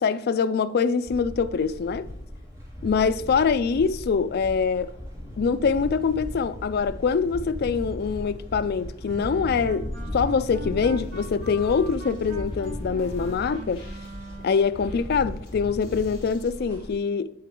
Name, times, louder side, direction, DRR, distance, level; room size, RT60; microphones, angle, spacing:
voice 1, 0.0-2.1 2.8-4.9 5.4-13.8 14.4-17.3, left 5 dB, 55° left, 0.4 m, -24 dB
sound 1, 1.0-16.9, equal, 15° right, 2.5 m, -37 dB
Wind instrument woodwind instrument, 9.0-14.8, left 1 dB, 65° right, 2.4 m, -41 dB
sound 2, 10.9-16.5, left 1 dB, 25° left, 2.7 m, -48 dB
11.5 x 3.8 x 3.7 m
head